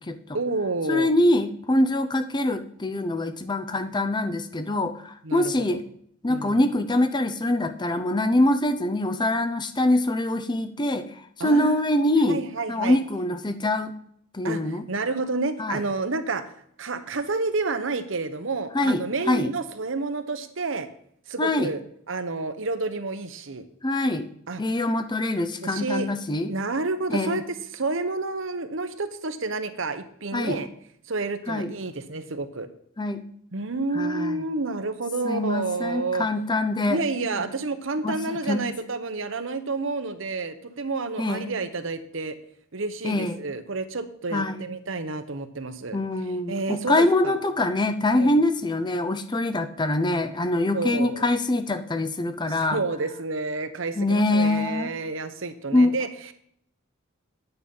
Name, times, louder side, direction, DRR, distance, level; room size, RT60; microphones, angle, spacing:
voice 1, 0.3-1.1 5.2-5.8 6.3-6.6 11.4-13.0 14.4-16.4 16.8-20.9 21.3-21.8 22.1-23.6 24.5-24.6 25.6-26.1 26.4-30.7 31.1-32.7 33.5-36.3 36.9-42.4 42.7-46.0 46.5-47.4 48.2-48.4 50.7-51.3 52.4-56.3, right 3 dB, 65° right, 10 dB, 1.0 m, -30 dB
voice 2, 0.9-5.8 6.2-11.1 11.4-12.4 12.7-13.9 14.3-14.8 15.6-15.8 18.7-19.5 21.4-21.7 23.8-24.3 24.6-26.5 27.1-27.4 30.3-30.6 31.5-31.7 33.0-33.2 33.9-34.4 35.2-37.0 38.0-38.6 41.2-41.5 43.0-43.4 44.3-44.6 45.9-52.8 54.0-54.9 55.7-55.9, left 1 dB, 20° left, 9 dB, 0.7 m, -24 dB
9.4 x 9.0 x 5.5 m, 0.66 s
head